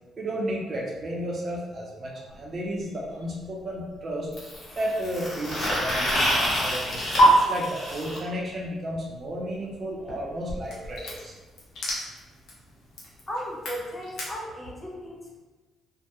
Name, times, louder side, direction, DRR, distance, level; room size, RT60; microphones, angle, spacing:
voice 1, 0.2-4.3 4.8-11.4, right 1 dB, 45° right, -3 dB, 0.6 m, -33 dB
sound 1, 2.3-2.4 4.3-8.2 10.1-10.2 10.5-10.6 10.8-11.0 11.9-12.0, equal, 50° left, 1.1 m, -28 dB
sound 2, 5.8-7.3 10.6-14.3, left 1 dB, 75° left, 0.6 m, -30 dB
voice 2, 13.3-15.4, equal, 25° left, -2 dB, 0.5 m, -36 dB
2.1 x 2.1 x 2.9 m, 1.2 s
cardioid pair, 90°, 0 cm